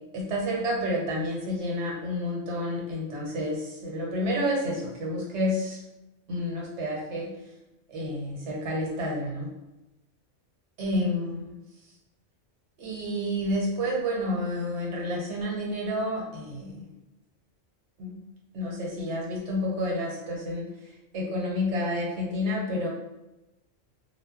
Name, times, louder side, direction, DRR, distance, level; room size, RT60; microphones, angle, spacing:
voice 1, 0.1-5.8 6.3-7.3 7.9-9.5 10.8-11.5 12.8-16.9 18.0-18.2 18.5-22.9, left 1 dB, 70° right, -3 dB, 1.1 m, -30 dB
2.1 x 2.0 x 3.5 m, 0.97 s
omnidirectional pair, 1.2 m